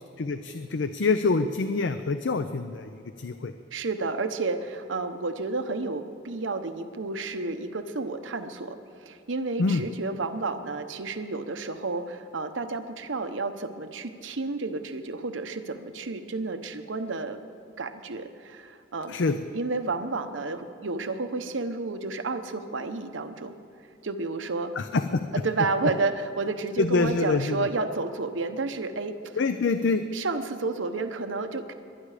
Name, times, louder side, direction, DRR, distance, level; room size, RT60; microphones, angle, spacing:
voice 1, 0.2-3.5 9.6-9.8 19.1-19.4 24.8-25.2 26.8-27.7 29.4-30.0, left 4 dB, 65° left, 9 dB, 0.5 m, -26 dB
voice 2, 3.7-17.4 17.8-19.2 19.5-23.5 24.0-24.7 25.3-29.4 30.1-31.7, right 3 dB, 80° right, 8 dB, 1.0 m, -31 dB
22.5 x 10.0 x 5.0 m, 2.8 s
head